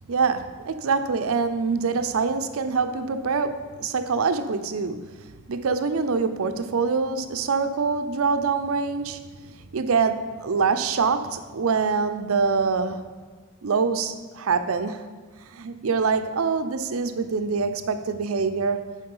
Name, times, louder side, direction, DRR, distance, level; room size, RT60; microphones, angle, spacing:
voice 1, 0.1-13.1 13.6-15.0 15.5-18.8, right 5 dB, 80° right, 10 dB, 0.5 m, -25 dB
7.7 x 5.0 x 5.5 m, 1.5 s
head